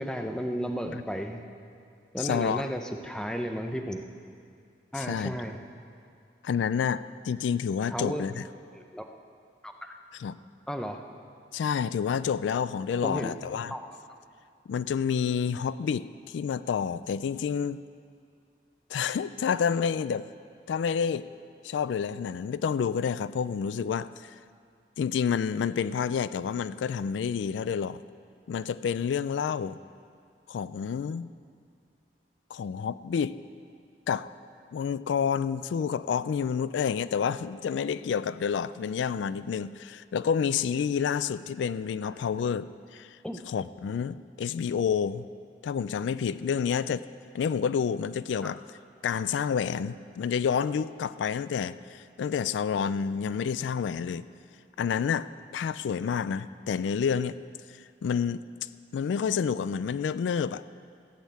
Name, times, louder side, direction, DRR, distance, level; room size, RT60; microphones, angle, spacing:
voice 1, 0.0-1.4 2.1-4.0 4.9-5.6 7.9-8.2 8.7-9.1 9.6-9.9 10.7-11.0 13.0-13.3 13.7-14.0 43.2-43.4 48.4-48.5, equal, 5° left, 5 dB, 0.6 m, -33 dB
voice 2, 2.2-2.6 5.0-5.3 6.4-8.4 10.2-10.4 11.5-13.7 14.7-17.8 18.9-20.3 20.7-21.3 21.6-24.3 25.0-28.0 28.5-29.8 30.5-31.3 32.5-33.4 34.1-34.3 34.7-43.2 43.5-45.2 45.6-47.1 47.3-48.8 49.0-54.3 54.8-55.3 55.5-57.4 58.0-58.4 58.9-60.8, left 7 dB, 90° left, 16 dB, 0.3 m, -29 dB
15.0 x 6.4 x 8.2 m, 2.3 s
head